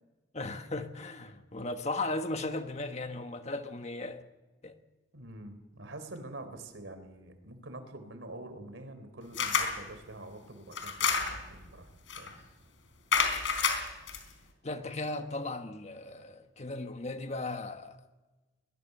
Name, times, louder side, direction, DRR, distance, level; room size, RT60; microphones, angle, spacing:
voice 1, 0.3-4.2 4.6-4.7 14.6-18.0, left 2 dB, 35° left, 1.4 m, -36 dB
voice 2, 5.1-11.9 12.2-12.3, right 1 dB, 80° right, 3.5 m, -46 dB
sound 1, 9.3-9.8 10.7-11.5 12.1-12.3 13.1-14.2, left 5 dB, 80° left, 3.9 m, -29 dB
22.0 x 21.0 x 6.7 m
head